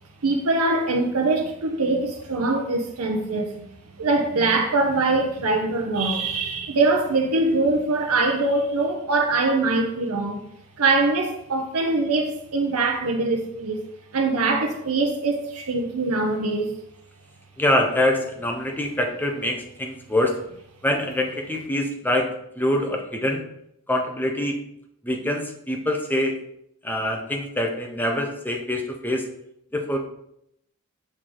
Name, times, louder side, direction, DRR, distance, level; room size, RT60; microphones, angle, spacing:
voice 1, 0.2-3.6 4.0-10.5 10.8-13.8 14.1-16.7, right 3 dB, 85° right, 0.7 m, -23 dB
voice 2, 17.6-20.4 20.8-23.5 23.9-24.6 25.0-26.4 26.8-29.3 29.7-30.0, left 1 dB, 10° left, 0.8 m, -25 dB
6.5 x 4.7 x 3.9 m
head